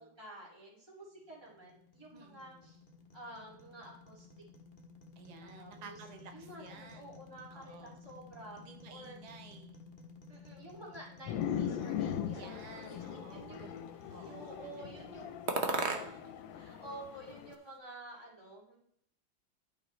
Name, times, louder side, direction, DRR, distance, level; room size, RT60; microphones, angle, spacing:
voice 1, 0.2-2.8 3.1-4.3 5.4-6.0 6.3-8.6 8.9-9.2 10.3-13.0 13.3-13.8 14.1-15.9 16.5-18.7, right 1 dB, 15° right, -6 dB, 2.5 m, -50 dB
sound 1, 1.2-16.4, left 4 dB, 40° left, 0.8 m, -56 dB
voice 2, 2.1-2.5 5.2-7.2 7.5-8.0 8.5-9.8 12.3-13.7 14.1-16.4, right 5 dB, 85° right, 5 dB, 0.3 m, -54 dB
sound 2, 11.3-17.5, left 9 dB, 80° left, 1.3 m, -40 dB
sound 3, 12.3-13.3 13.9-14.6 15.5-16.4 16.7-17.8, right 4 dB, 50° right, 0.8 m, -38 dB
11.5 x 5.0 x 3.2 m, 0.70 s
omnidirectional pair, 2.0 m